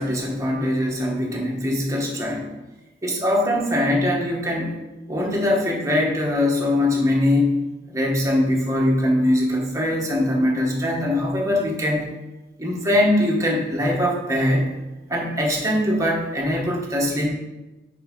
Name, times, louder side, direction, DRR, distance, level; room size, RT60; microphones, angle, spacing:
voice 1, 0.0-2.4 3.0-4.7 5.1-7.6 7.9-12.1 12.6-14.7 15.1-17.3, left 1 dB, 20° right, -2 dB, 1.3 m, -22 dB
5.8 x 4.7 x 5.2 m, 1.1 s
head